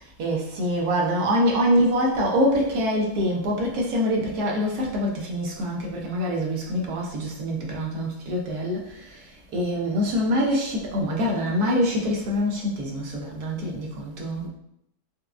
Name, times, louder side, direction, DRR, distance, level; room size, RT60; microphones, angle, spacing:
voice 1, 0.2-14.5, equal, 75° right, -2 dB, 1.3 m, -25 dB
4.5 x 2.3 x 2.4 m, 0.76 s
omnidirectional pair, 1.7 m